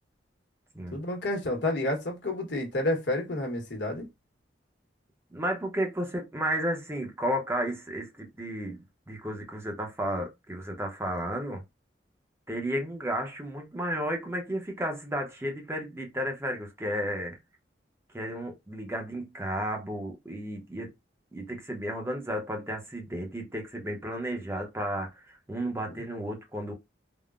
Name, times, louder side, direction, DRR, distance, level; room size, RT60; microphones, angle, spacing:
voice 1, 0.9-4.1, left 1 dB, 75° left, 1.1 m, -30 dB
voice 2, 5.3-11.6 12.5-17.4 18.1-20.9 21.3-26.7, equal, 15° right, 0.6 m, -33 dB
3.6 x 2.0 x 2.3 m
head